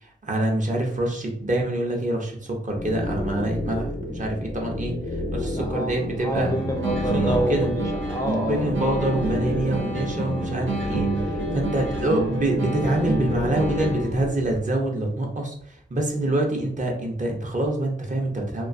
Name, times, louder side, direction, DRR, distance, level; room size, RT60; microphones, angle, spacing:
voice 1, 0.0-6.5 7.1-7.7 8.4-18.7, right 1 dB, 40° right, 0 dB, 0.6 m, -26 dB
sound 1, 2.7-14.5, left 2 dB, 75° left, 0.6 m, -31 dB
voice 2, 5.4-8.7, equal, 15° left, 1 dB, 0.4 m, -28 dB
sound 2, 6.3-14.3, right 2 dB, 85° right, 0.5 m, -29 dB
2.3 x 2.3 x 2.4 m, 0.62 s
wide cardioid pair, 60°, 19 cm